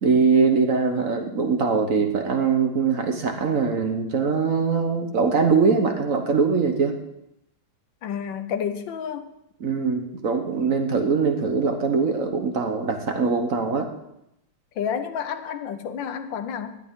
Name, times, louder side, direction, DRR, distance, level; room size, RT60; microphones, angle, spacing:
voice 1, 0.0-6.9 9.6-13.9, right 5 dB, 50° right, 5 dB, 1.3 m, -22 dB
voice 2, 8.0-9.3 14.7-16.8, left 7 dB, 75° left, 10 dB, 1.6 m, -30 dB
18.0 x 11.0 x 3.7 m, 0.82 s
omnidirectional pair, 2.1 m